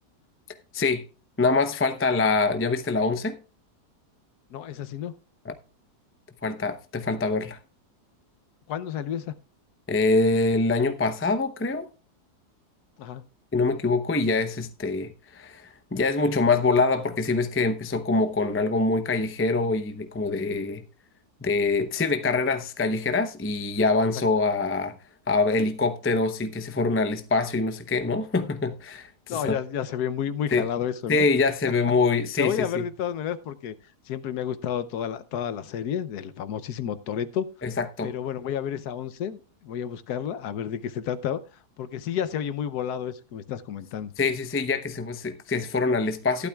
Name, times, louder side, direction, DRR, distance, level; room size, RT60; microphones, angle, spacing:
voice 1, 0.7-1.0 1.4-3.4 5.4-5.5 6.4-7.6 9.9-11.9 13.5-20.8 21.4-25.0 25.3-29.6 30.5-30.7 31.1-32.8 37.6-38.1 44.2-46.5, left 3 dB, 20° left, 0.4 m, -24 dB
voice 2, 4.5-5.1 8.7-9.3 13.0-13.2 29.3-31.3 32.4-33.7 34.1-37.5 38.0-41.4 41.8-44.1, left 9 dB, 75° left, 1.3 m, -31 dB
14.5 x 12.0 x 2.3 m
omnidirectional pair, 1.7 m